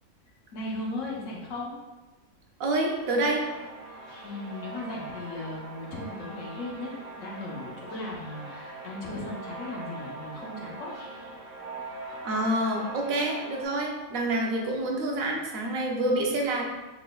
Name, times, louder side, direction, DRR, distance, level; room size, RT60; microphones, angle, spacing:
voice 1, 0.5-1.8 3.9-10.9, left 2 dB, 65° left, -3 dB, 1.2 m, -37 dB
voice 2, 2.6-3.4 12.2-16.6, right 1 dB, 80° right, 0 dB, 1.1 m, -27 dB
sound 1, 3.0-13.7, right 3 dB, 40° right, 1.8 m, -42 dB
4.1 x 3.7 x 2.2 m, 1.2 s
omnidirectional pair, 1.4 m